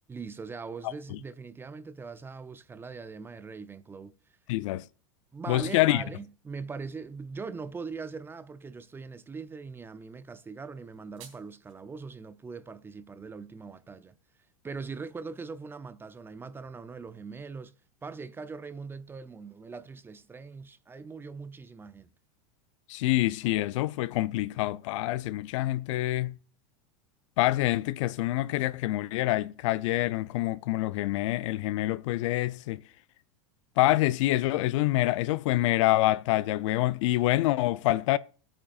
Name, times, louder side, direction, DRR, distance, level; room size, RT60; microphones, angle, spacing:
voice 1, 0.1-4.1 5.3-14.2 14.6-17.7 18.0-22.1, right 4 dB, 15° right, 0.5 m, -41 dB
voice 2, 4.5-4.8 5.5-6.0 22.9-26.4 27.4-32.8 33.8-38.2, left 17 dB, 65° left, 0.5 m, -26 dB
sound 1, 10.7-11.7, right 8 dB, 70° right, 3.5 m, -53 dB
21.5 x 8.9 x 2.4 m
supercardioid pair, 125°, 17 cm